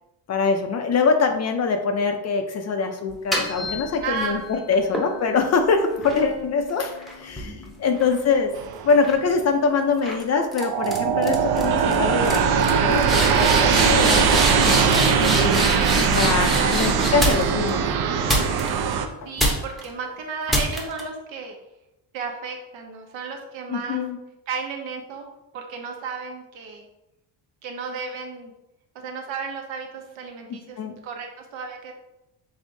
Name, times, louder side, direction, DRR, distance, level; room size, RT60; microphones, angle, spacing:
voice 1, 0.3-8.5 8.8-15.7 16.1-17.9 19.2-19.3 23.7-24.2 30.8-30.9, left 4 dB, 40° left, 6 dB, 0.4 m, -24 dB
sound 1, 3.1-4.3 4.9-8.5 8.9-9.3 10.0-10.2 10.5-11.0 11.2-11.6 11.9-12.0 12.2-17.7 18.3-18.9 19.4-19.9 20.5-21.0, equal, ahead, 0.7 m, -27 dB
voice 2, 4.0-4.4 4.7-5.0 8.0-8.3 11.7-12.1 16.5-17.0 19.2-21.6 22.1-24.0 24.5-25.3 25.5-26.9 27.6-28.5 28.9-31.9, right 5 dB, 80° right, 2 dB, 1.0 m, -33 dB
sound 2, 8.5-9.3 10.2-10.3 10.6-19.1, right 6 dB, 55° right, 0.5 m, -20 dB
5.2 x 3.5 x 2.6 m, 0.92 s
cardioid pair, 140°, 46 cm